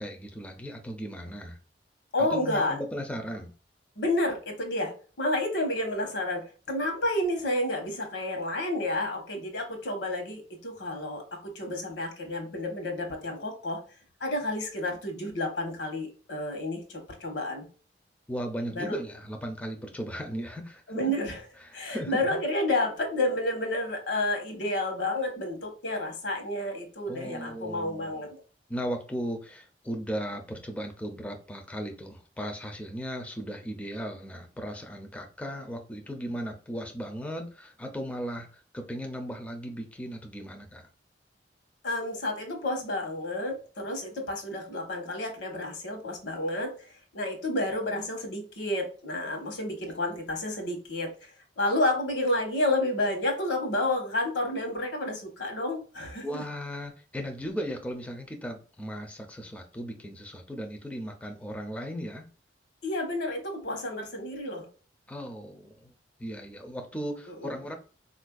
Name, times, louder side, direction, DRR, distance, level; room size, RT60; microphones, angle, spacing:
voice 1, 0.0-1.6 2.2-3.5 18.3-21.1 21.6-22.2 27.1-28.2 28.7-40.9 56.2-62.3 65.1-65.9 66.2-67.8, equal, 10° left, 3 dB, 0.4 m, -37 dB
voice 2, 2.1-2.8 4.0-13.8 14.2-17.6 18.7-19.0 20.9-21.4 21.7-28.4 41.8-56.4 62.8-64.7 67.4-67.5, left 1 dB, 75° left, 4 dB, 1.0 m, -30 dB
3.9 x 2.5 x 2.3 m, 0.38 s
head